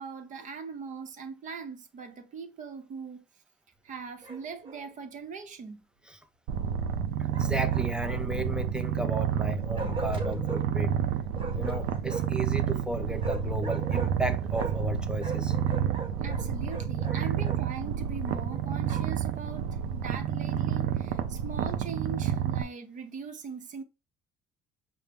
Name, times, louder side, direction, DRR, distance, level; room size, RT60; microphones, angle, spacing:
voice 1, 0.0-3.2 3.8-5.8 16.2-23.8, right 5 dB, 50° right, 0.7 m, -40 dB
Bark, 4.2-4.9 7.3-8.4 9.7-10.6 11.3-12.4 13.2-14.9 15.2-17.6 18.2-19.2, right 3 dB, 30° right, 1.1 m, -39 dB
Purr, 6.5-22.6, right 8 dB, 80° right, 0.5 m, -30 dB
voice 2, 7.2-11.0 11.5-15.5 17.2-17.3, right 1 dB, 5° right, 0.5 m, -34 dB
5.5 x 2.1 x 3.4 m
cardioid pair, 110°, 17 cm